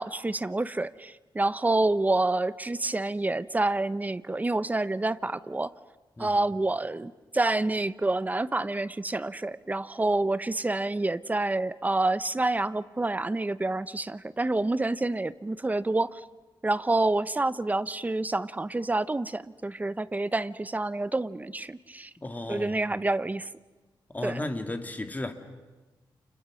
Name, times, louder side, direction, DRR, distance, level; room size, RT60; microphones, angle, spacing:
voice 1, 0.0-5.7 6.2-16.2 16.6-22.1 22.5-23.5 24.2-24.4, right 2 dB, 20° right, 0.8 m, -28 dB
voice 2, 22.2-22.8 24.1-25.3, left 2 dB, 20° left, 2.3 m, -34 dB
30.0 x 29.0 x 6.3 m
wide cardioid pair, 115°, 8 cm